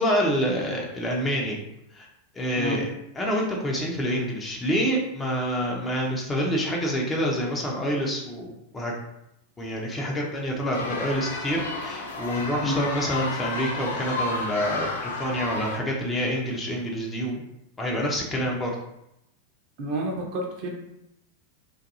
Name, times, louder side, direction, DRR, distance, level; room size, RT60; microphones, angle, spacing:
voice 1, 0.0-1.6 1.9-2.1 2.3-2.9 3.2-8.9 9.6-17.4 17.8-18.7, equal, 15° left, -2 dB, 0.6 m, -27 dB
sound 1, 10.7-15.8, left 3 dB, 60° left, 0.4 m, -32 dB
voice 2, 19.8-20.7, right 1 dB, 45° right, 0 dB, 0.6 m, -29 dB
2.6 x 2.4 x 2.6 m, 0.83 s
figure-of-eight pair, 90°, 0 cm